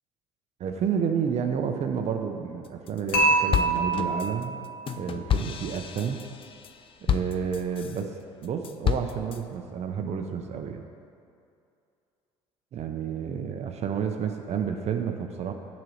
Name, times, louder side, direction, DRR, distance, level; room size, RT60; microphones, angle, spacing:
voice 1, 0.6-4.6 5.0-6.2 7.0-8.1 8.4-10.8 12.7-15.5, right 7 dB, 50° right, 5 dB, 0.7 m, -30 dB
sound 1, 2.7-3.2 3.5-8.0 8.4-9.4, left 9 dB, 40° left, 0.5 m, -30 dB
Dishes pots and pans / Chink clink, 3.1-5.3, right 3 dB, 70° left, 1.5 m, -26 dB
7.5 x 4.1 x 6.4 m, 2.5 s
hypercardioid pair, 75°, 15 cm